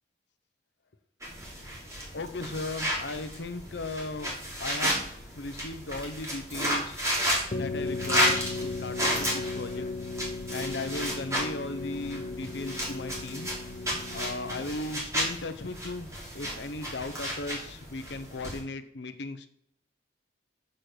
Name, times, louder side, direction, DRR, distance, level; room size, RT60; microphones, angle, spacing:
sound 1, 1.2-18.6, equal, 15° right, 2.4 m, -33 dB
voice 1, 2.1-7.1 7.6-9.9 10.5-13.5 14.1-19.5, left 2 dB, 65° left, 10 dB, 0.7 m, -37 dB
sound 2, 7.5-15.0, left 3 dB, 40° left, 0.5 m, -36 dB
6.4 x 4.4 x 6.5 m, 0.65 s
head